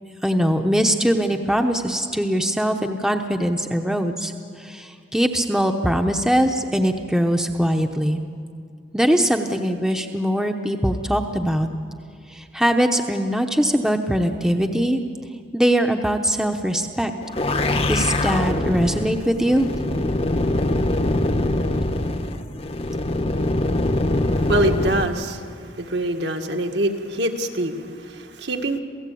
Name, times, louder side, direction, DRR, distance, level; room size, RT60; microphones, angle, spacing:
voice 1, 0.2-4.3 4.6-8.2 8.9-11.7 12.3-15.0 15.5-17.1 17.9-19.7, equal, 5° right, 4 dB, 0.9 m, -21 dB
sound 1, 17.2-25.1, left 1 dB, 30° left, 0.9 m, -23 dB
voice 2, 24.3-28.8, right 1 dB, 60° right, 4 dB, 1.8 m, -25 dB
27.5 x 17.0 x 8.5 m, 2.3 s
head